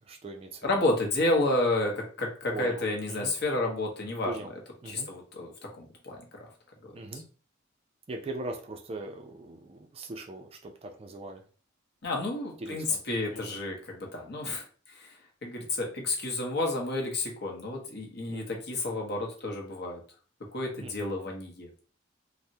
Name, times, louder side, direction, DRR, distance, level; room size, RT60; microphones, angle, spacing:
voice 1, 0.1-0.7 2.5-3.3 4.2-4.5 4.8-5.1 6.9-7.2 8.1-11.4 12.6-13.0 13.3-13.6 18.3-18.6 20.8-21.1, right 2 dB, 30° right, 4 dB, 0.3 m, -40 dB
voice 2, 0.6-4.4 4.8-6.5 6.8-6.9 12.0-20.0 20.5-21.7, left 2 dB, 55° left, 1 dB, 0.8 m, -31 dB
3.3 x 2.1 x 2.7 m, 0.38 s
head